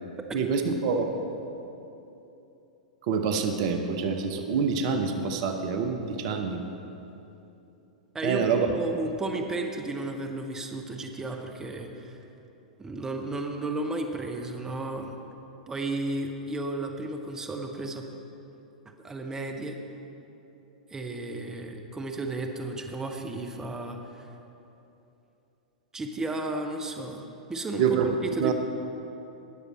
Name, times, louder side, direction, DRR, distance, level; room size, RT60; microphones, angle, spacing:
voice 1, 0.3-1.1 3.0-6.6 8.2-8.7 27.8-28.1 28.4-28.5, right 6 dB, 50° right, 6 dB, 0.9 m, -26 dB
voice 2, 8.1-12.2 12.8-15.2 15.7-18.0 19.0-19.8 20.9-24.3 25.9-27.8 28.2-28.5, right 2 dB, 15° right, 3 dB, 0.9 m, -33 dB
19.0 x 6.8 x 4.2 m, 2.9 s
figure-of-eight pair, 100°, 4 cm